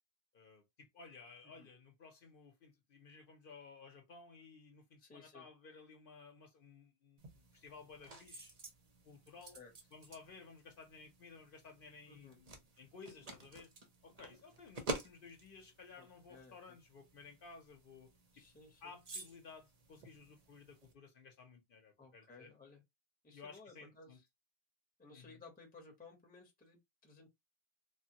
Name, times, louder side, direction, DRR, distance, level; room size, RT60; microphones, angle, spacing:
voice 1, 0.3-8.5 9.0-9.6 9.9-13.7 14.0-18.4 18.8-22.5 23.3-24.2 25.1-25.4, left 4 dB, 60° left, 0.6 m, -56 dB
voice 2, 5.0-5.5 9.4-9.7 12.1-12.4 16.0-16.8 18.3-18.9 22.0-22.8 23.2-24.2 25.0-27.3, left 4 dB, 10° left, 0.5 m, -58 dB
sound 1, 7.2-20.9, right 2 dB, 50° right, 0.4 m, -51 dB
3.2 x 2.1 x 2.8 m
omnidirectional pair, 1.5 m